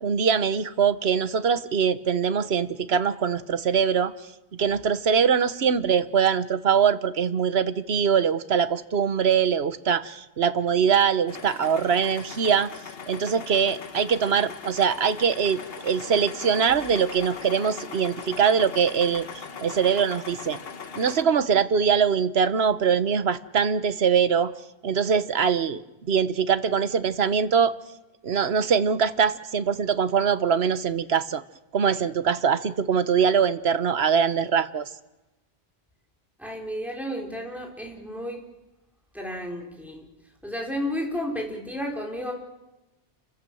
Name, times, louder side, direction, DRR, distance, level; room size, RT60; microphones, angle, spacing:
voice 1, 0.0-4.1 4.6-12.7 13.1-20.6 21.0-24.5 24.8-25.8 26.1-27.7 28.2-31.4 31.7-34.9, right 7 dB, 75° right, 13 dB, 1.3 m, -23 dB
sound 1, 11.3-21.2, left 6 dB, 65° left, 1.3 m, -40 dB
voice 2, 36.4-38.4 39.1-40.1 40.4-42.3, equal, ahead, -1 dB, 4.8 m, -32 dB
29.0 x 15.0 x 7.8 m, 1.0 s
omnidirectional pair, 1.1 m